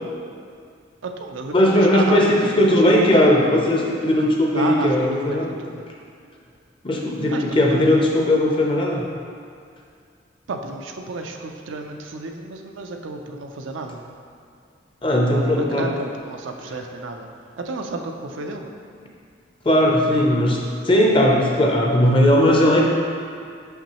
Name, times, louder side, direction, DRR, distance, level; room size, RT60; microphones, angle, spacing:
voice 1, 1.0-2.8 4.5-5.9 7.3-7.6 10.5-14.0 15.8-17.3 17.6-18.7, right 3 dB, 75° right, 4 dB, 0.5 m, -31 dB
voice 2, 1.5-5.5 6.8-9.1 15.0-15.9 19.6-20.6 20.8-22.9, left 1 dB, 25° left, -1 dB, 0.6 m, -18 dB
6.1 x 5.7 x 2.9 m, 2.3 s
head